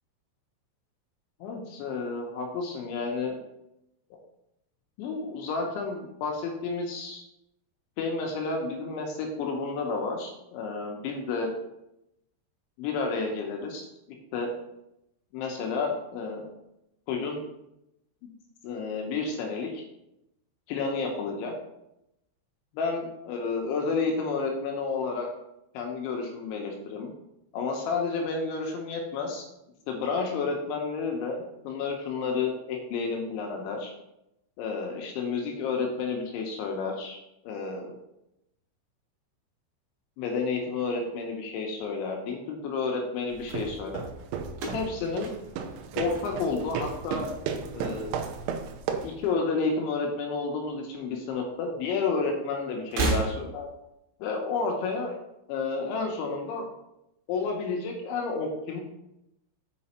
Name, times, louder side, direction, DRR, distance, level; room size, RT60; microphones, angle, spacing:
voice 1, 1.4-3.4 5.0-7.2 8.0-11.5 12.8-13.9 14.3-14.5 15.3-16.5 17.1-17.4 18.6-19.8 20.7-21.5 22.7-25.3 25.7-27.1 27.5-29.4 29.9-33.9 34.6-37.2 37.4-37.9 40.2-44.0 44.7-45.4 46.0-47.3 47.7-48.2 49.0-53.7 54.2-55.2 55.5-56.6 57.3-58.8, left 4 dB, 75° left, 1 dB, 3.1 m, -31 dB
sound 1, 43.3-49.2, right 6 dB, 85° right, 2.9 m, -34 dB
sound 2, 44.5-46.9 47.2-47.8 48.8-49.8 50.1-50.2 51.3-51.4 52.8-53.8, right 3 dB, 65° right, 3.0 m, -33 dB
6.8 x 5.4 x 4.2 m, 0.85 s
omnidirectional pair, 5.7 m